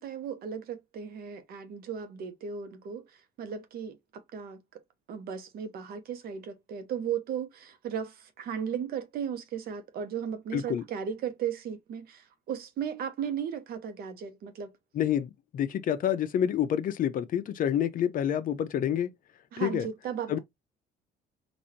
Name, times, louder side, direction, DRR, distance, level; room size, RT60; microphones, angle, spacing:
voice 1, 0.0-3.0 3.4-4.6 5.1-14.7 19.5-20.4, right 8 dB, 65° right, 1.0 m, -36 dB
voice 2, 10.5-10.8 14.9-19.1 19.6-19.9 20.3-20.4, left 9 dB, 55° left, 0.7 m, -28 dB
4.1 x 2.6 x 2.9 m
cardioid pair, 110°, 17 cm